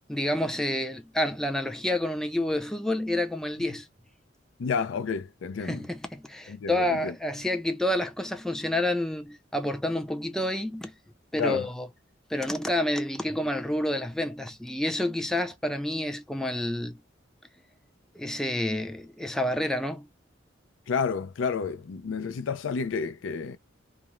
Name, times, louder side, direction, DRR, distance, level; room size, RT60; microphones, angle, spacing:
voice 1, 0.1-3.9 5.6-10.9 11.3-11.9 12.3-17.0 18.2-20.1, left 1 dB, 5° left, 0.3 m, -29 dB
voice 2, 4.6-5.8 6.5-7.1 11.4-11.7 20.9-23.6, left 5 dB, 90° left, 0.4 m, -30 dB
2.4 x 2.0 x 2.9 m
head